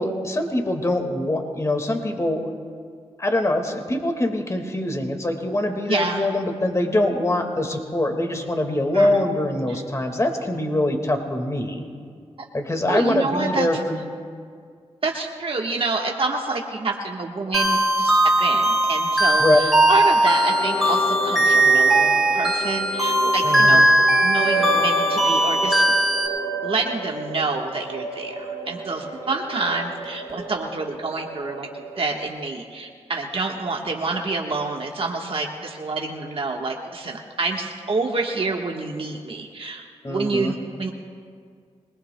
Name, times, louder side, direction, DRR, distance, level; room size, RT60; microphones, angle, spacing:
voice 1, 0.0-2.4 3.2-11.8 12.5-14.0 19.4-19.6 23.4-23.9 40.0-40.5, left 1 dB, 25° left, 4 dB, 1.8 m, -23 dB
voice 2, 5.9-6.2 8.9-9.1 9.7-9.8 12.9-13.7 15.0-23.9 24.2-25.8 26.6-31.7 31.9-40.9, right 3 dB, 50° right, 0 dB, 1.3 m, -27 dB
sound 1, 17.5-26.3, right 1 dB, ahead, 3.1 m, -19 dB
sound 2, 20.3-32.3, right 2 dB, 60° left, 5.0 m, -32 dB
23.5 x 20.0 x 2.2 m, 2.1 s
cardioid pair, 60°, 12 cm